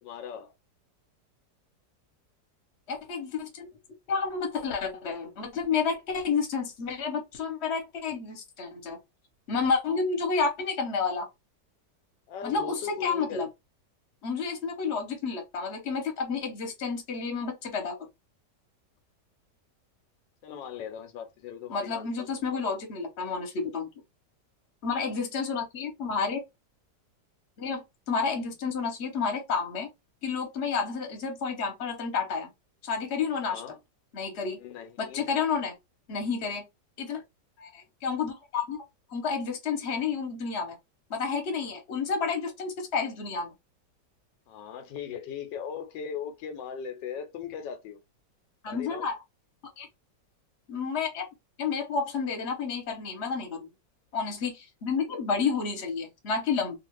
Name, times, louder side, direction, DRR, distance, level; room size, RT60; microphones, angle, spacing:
voice 1, 0.0-0.5 12.3-13.5 20.4-22.6 33.3-33.8 34.5-35.3 44.5-48.0 48.7-49.1, left 8 dB, 85° left, 1.3 m, -39 dB
voice 2, 2.9-3.7 4.1-9.0 9.5-11.3 12.4-13.5 14.2-18.0 21.7-23.9 24.8-26.4 27.6-29.9 30.2-32.5 32.8-33.6 34.1-34.6 35.0-35.7 36.1-36.6 37.0-37.2 37.6-38.8 39.1-40.8 41.1-43.5 48.6-49.2 49.8-49.9 50.7-51.3 51.6-53.7 54.1-56.8, left 5 dB, 45° left, 1.1 m, -30 dB
2.8 x 2.4 x 3.0 m
omnidirectional pair, 1.9 m